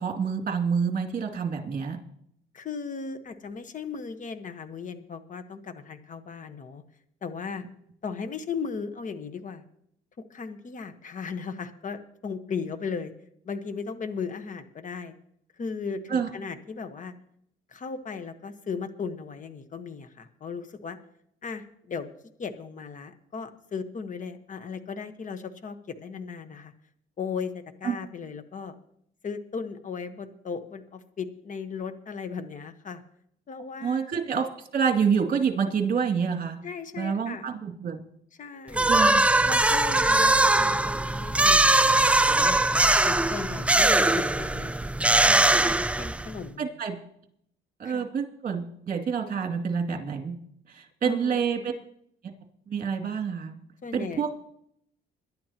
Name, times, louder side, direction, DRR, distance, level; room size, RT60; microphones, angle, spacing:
voice 1, 0.0-2.0 16.1-16.3 27.8-28.0 33.8-34.5 34.7-36.6 37.0-38.0 38.9-39.2 46.6-46.9 47.8-50.4 50.7-51.7 52.7-53.6 53.9-54.3, right 6 dB, 45° right, 3 dB, 2.5 m, -27 dB
voice 2, 2.5-6.8 7.2-7.6 8.0-9.6 10.2-13.1 13.4-15.1 15.6-17.1 17.7-21.0 21.4-22.1 22.4-26.7 27.2-28.7 29.2-33.0 33.5-34.2 36.6-37.5 38.4-38.9 39.4-42.6 43.0-44.7 45.2-46.7 47.8-48.1 51.0-51.4 53.8-54.2, left 5 dB, 40° left, 10 dB, 1.3 m, -36 dB
sound 1, 38.7-46.4, right 2 dB, 5° right, 0.4 m, -21 dB
22.0 x 11.5 x 3.0 m, 0.71 s
cardioid pair, 100°, 20 cm